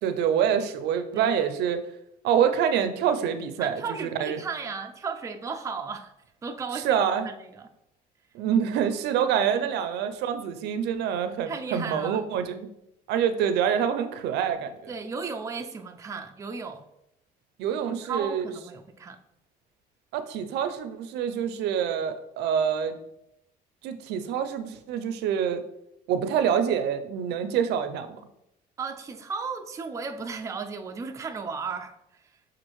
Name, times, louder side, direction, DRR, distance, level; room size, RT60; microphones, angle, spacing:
voice 1, 0.0-1.8 2.2-4.4 6.8-7.3 8.3-12.7 13.1-14.9 17.6-18.4 20.1-22.9 23.8-25.6 26.1-28.1, right 8 dB, 80° right, 0.4 m, -26 dB
voice 2, 3.6-6.1 6.4-7.7 9.6-9.7 11.5-12.2 14.9-16.8 18.0-19.2 28.8-32.3, right 5 dB, 20° right, 0.3 m, -35 dB
6.2 x 2.5 x 3.0 m
cardioid pair, 110°, 17 cm